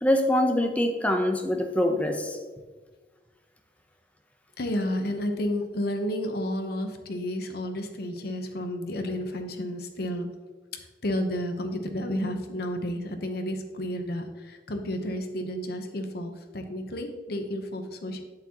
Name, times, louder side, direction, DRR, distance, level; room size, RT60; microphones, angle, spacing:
voice 1, 0.0-2.4, left 1 dB, 10° left, 4 dB, 0.7 m, -24 dB
voice 2, 4.6-10.3 11.0-18.2, left 1 dB, 60° left, 6 dB, 0.9 m, -31 dB
8.6 x 7.6 x 2.9 m, 1.4 s
head